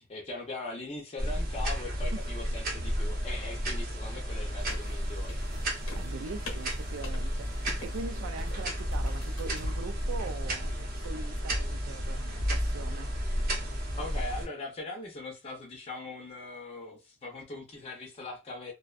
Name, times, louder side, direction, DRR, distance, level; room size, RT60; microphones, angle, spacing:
voice 1, 0.0-5.4 14.0-18.7, left 2 dB, 30° left, 0.5 m, -40 dB
sound 1, 1.2-14.5, equal, 45° right, 0.8 m, -32 dB
sound 2, 4.6-11.1, left 1 dB, 70° left, 0.8 m, -45 dB
voice 2, 6.0-13.1, right 4 dB, 75° right, 0.4 m, -42 dB
2.5 x 2.1 x 2.3 m
head